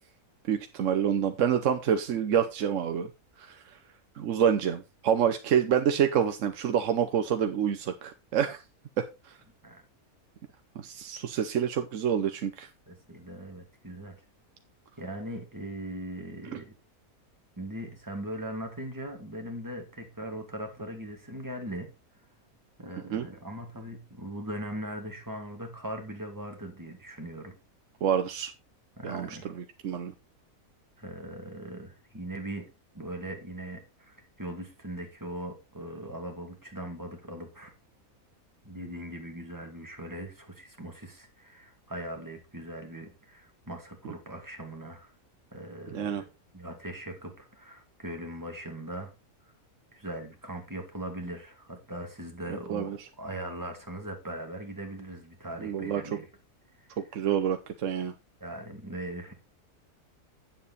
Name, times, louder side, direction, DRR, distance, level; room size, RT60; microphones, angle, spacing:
voice 1, 0.5-3.1 3.4-3.7 4.2-8.6 9.0-9.4 10.8-12.7 16.5-16.6 23.1-23.3 28.0-28.5 29.0-30.1 45.9-46.2 52.7-53.0 55.6-56.0 57.0-58.1, right 8 dB, 60° right, 7 dB, 1.0 m, -27 dB
voice 2, 12.9-14.1 15.0-16.7 17.6-21.9 22.8-27.6 29.0-29.5 31.0-32.7 32.9-37.7 38.6-45.1 45.5-46.2 46.5-49.1 49.9-56.3 56.9-57.0 58.4-59.3, right 1 dB, 10° right, 2 dB, 2.2 m, -40 dB
8.7 x 7.7 x 4.0 m, 0.26 s
omnidirectional pair, 1.6 m